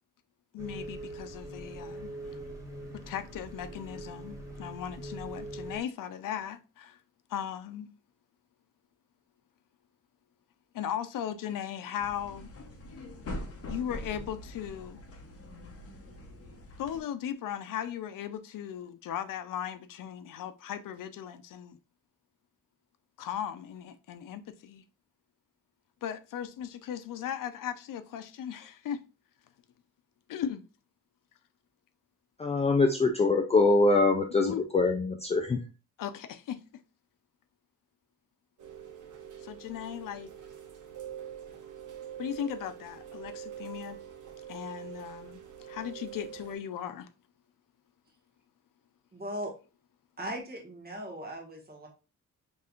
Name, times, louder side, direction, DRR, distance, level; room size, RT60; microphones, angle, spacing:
voice 1, 0.5-2.1 3.1-7.0 7.3-7.9 10.7-12.5 13.7-15.0 16.8-21.8 23.2-24.8 26.0-29.0 30.3-30.6 34.4-34.6 36.0-36.6 39.4-40.3 42.2-44.0 44.5-45.4 45.7-47.1, left 9 dB, 85° left, 0.5 m, -37 dB
sound 1, 0.6-5.8, right 1 dB, 10° right, 1.3 m, -42 dB
sound 2, 12.0-17.0, left 1 dB, 50° left, 0.8 m, -43 dB
voice 2, 32.4-35.6, left 3 dB, 20° left, 0.4 m, -24 dB
Rain, 38.6-46.5, right 9 dB, 70° right, 1.1 m, -45 dB
voice 3, 49.1-49.5 50.2-51.9, right 1 dB, 30° right, 1.5 m, -38 dB
5.3 x 3.3 x 2.4 m
wide cardioid pair, 155°, 32 cm